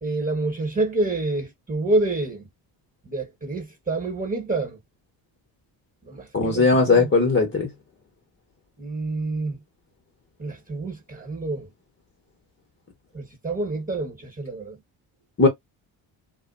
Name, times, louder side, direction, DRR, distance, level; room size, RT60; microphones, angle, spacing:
voice 1, 0.0-2.5 3.0-4.8 6.0-7.1 8.8-9.6 10.4-11.7 13.1-14.8, right 2 dB, 15° right, 1.4 m, -27 dB
voice 2, 6.3-7.7 15.4-15.5, left 4 dB, 25° left, 1.1 m, -18 dB
2.4 x 2.2 x 2.5 m
hypercardioid pair, 55°, 47 cm